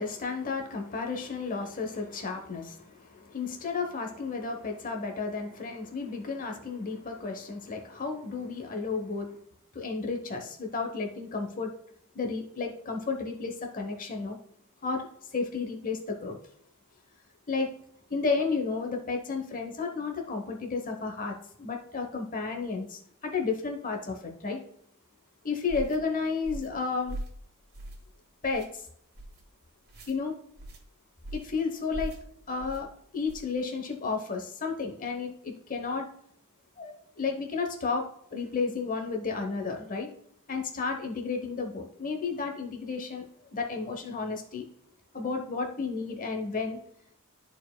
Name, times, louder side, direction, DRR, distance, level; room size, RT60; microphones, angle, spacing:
voice 1, 0.0-9.4 9.7-11.7 12.1-14.4 14.8-16.4 17.5-17.7 18.1-24.6 25.4-27.2 28.4-28.8 30.1-30.3 31.3-32.1 32.5-36.1 36.8-40.1 40.5-43.3 43.5-44.6 45.1-46.8, left 4 dB, 40° left, 3 dB, 0.9 m, -32 dB
sound 1, 25.7-26.0 26.4-26.8 27.1-27.4 27.7-28.1 28.4-28.7 29.1-29.4 29.9-30.1 30.6-30.8 31.2-31.5 31.9-32.2 32.6-32.8 33.3-33.5, right 1 dB, 50° right, 1.6 m, -40 dB
13.0 x 4.5 x 2.2 m, 0.68 s
head